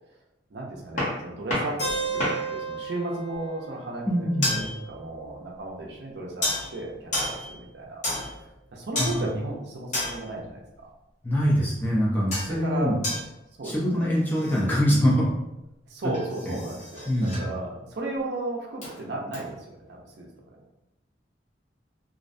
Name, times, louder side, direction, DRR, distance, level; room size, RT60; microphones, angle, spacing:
voice 1, 0.5-8.0 8.7-10.9 12.5-12.9 13.6-14.0 15.9-20.6, right 2 dB, 65° right, -1 dB, 0.5 m, -35 dB
sound 1, 1.0-1.8 2.2-2.5 3.3-3.4 4.4-4.9 6.4-6.8 7.1-7.6 8.0-8.5 8.9-9.3 9.9-10.3 12.3-12.6 13.0-13.3 14.0-14.6 16.1-17.5 18.8-19.0 19.3-19.5, left 1 dB, 40° left, 0.8 m, -30 dB
Keyboard (musical), 1.8-5.7, right 4 dB, 70° left, 0.9 m, -35 dB
voice 2, 4.1-4.6 9.0-9.2 11.2-13.0 13.6-15.3 16.5-16.6 17.1-17.5, equal, 10° left, -5 dB, 0.5 m, -24 dB
2.5 x 2.1 x 2.5 m, 0.92 s
head